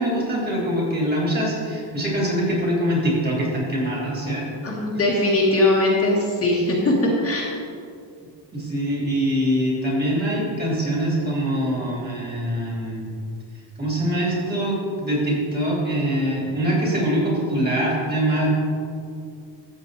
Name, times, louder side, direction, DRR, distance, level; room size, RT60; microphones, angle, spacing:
voice 1, 0.0-4.5 8.5-13.1 13.8-18.5, equal, 20° right, -4 dB, 2.9 m, -23 dB
voice 2, 4.6-6.9 7.2-7.4, left 2 dB, 30° left, -4 dB, 1.7 m, -20 dB
14.0 x 7.9 x 4.0 m, 2.4 s
cardioid pair, 175°, 44 cm